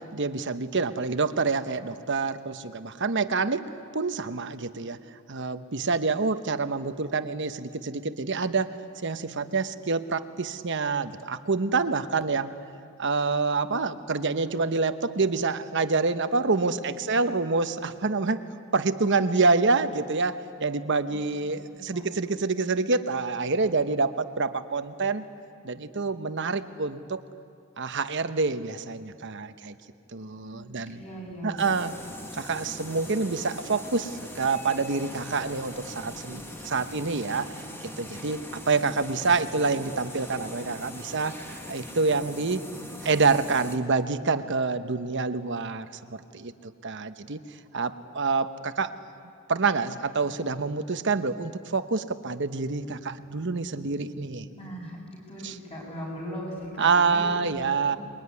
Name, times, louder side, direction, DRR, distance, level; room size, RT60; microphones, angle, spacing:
voice 1, 0.1-5.0 5.3-8.8 9.0-12.5 13.0-18.4 18.7-25.3 25.6-27.2 27.8-29.8 30.1-31.0 31.4-31.9 32.3-42.7 43.0-47.4 47.7-49.0 49.5-54.5 55.4-55.5 56.8-58.0, right 4 dB, 55° right, 10 dB, 1.0 m, -27 dB
voice 2, 16.6-17.2 17.7-18.0 21.1-22.1 30.1-31.6 54.5-55.0 55.3-58.0, equal, 25° left, -2 dB, 7.4 m, -40 dB
sound 1, 31.6-43.8, left 1 dB, 10° left, 1.9 m, -41 dB
26.5 x 22.5 x 9.7 m, 2.4 s
head